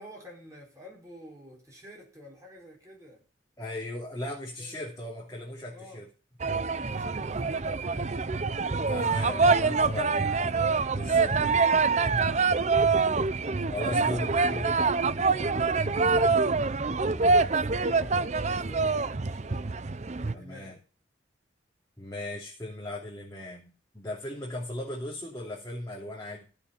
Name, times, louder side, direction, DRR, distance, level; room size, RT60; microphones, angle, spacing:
voice 1, 0.0-3.3 4.6-4.8 5.7-6.1 6.8-8.2 8.8-9.6 15.4-16.3 17.5-19.8 20.1-20.8 24.2-24.5, left 1 dB, 15° right, 4.7 m, -49 dB
voice 2, 3.6-6.1 8.9-11.7 12.8-13.2 13.7-14.8 17.1-17.4 20.3-20.8 22.0-26.4, left 1 dB, 20° left, 3.0 m, -37 dB
sound 1, 6.4-20.3, right 4 dB, 35° right, 0.6 m, -25 dB
16.0 x 7.0 x 5.8 m
head